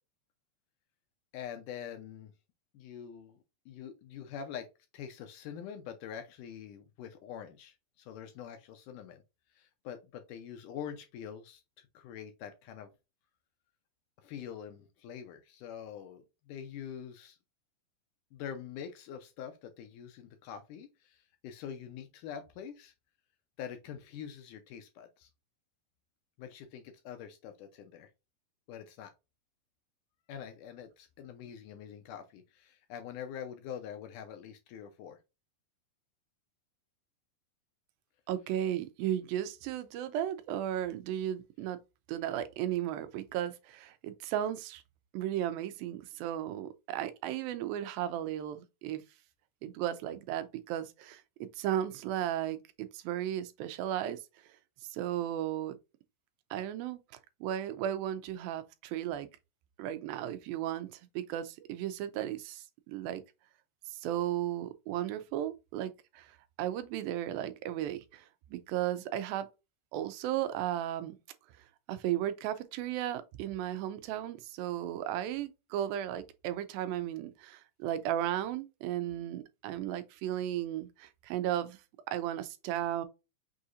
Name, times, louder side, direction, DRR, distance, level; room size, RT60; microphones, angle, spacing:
voice 1, 1.3-2.3 2.7-3.4 3.7-4.7 4.9-9.2 9.6-12.9 14.2-17.4 18.3-22.9 23.6-25.3 26.4-28.1 28.7-29.1 30.3-35.2, left 8 dB, 75° left, 2.0 m, -45 dB
voice 2, 38.3-41.8 42.1-44.8 45.1-49.0 49.6-54.2 54.9-55.8 56.5-57.0 57.4-59.3 59.8-63.2 63.9-66.3 66.6-69.5 69.9-71.2 71.9-81.8 82.1-83.1, right 11 dB, 90° right, 2.4 m, -35 dB
6.3 x 2.8 x 2.5 m
omnidirectional pair, 4.1 m